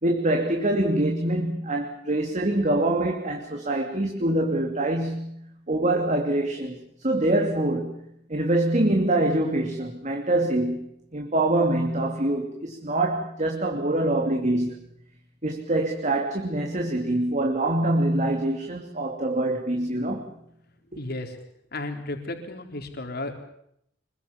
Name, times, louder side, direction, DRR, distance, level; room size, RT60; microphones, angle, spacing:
voice 1, 0.0-5.3 5.7-8.0 8.3-14.8 15.4-20.3, right 1 dB, 40° right, 3 dB, 2.8 m, -25 dB
voice 2, 20.9-21.4 21.7-23.3, left 2 dB, 55° left, 5 dB, 4.0 m, -33 dB
26.0 x 22.5 x 7.2 m, 0.72 s
head